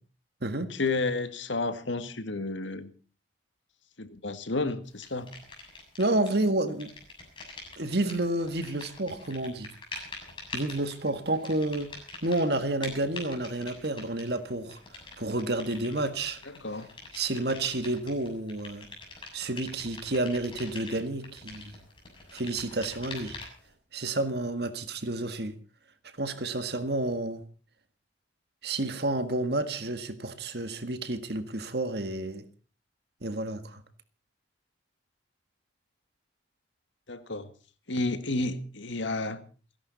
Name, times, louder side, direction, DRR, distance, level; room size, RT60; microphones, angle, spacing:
voice 1, 0.7-2.9 4.0-5.3 16.4-16.9 37.1-37.5 37.9-39.4, left 2 dB, 80° left, 1.9 m, -31 dB
sound 1, 5.0-6.4 6.7-23.7, left 3 dB, 25° left, 7.1 m, -45 dB
voice 2, 6.0-6.9 7.8-9.7 10.5-11.9 12.2-14.8 15.2-16.4 17.1-18.9 19.3-21.8 22.3-23.3 23.9-25.6 26.2-27.4 28.6-32.4 33.2-33.8, right 2 dB, 55° right, 1.7 m, -30 dB
29.5 x 11.0 x 4.1 m
head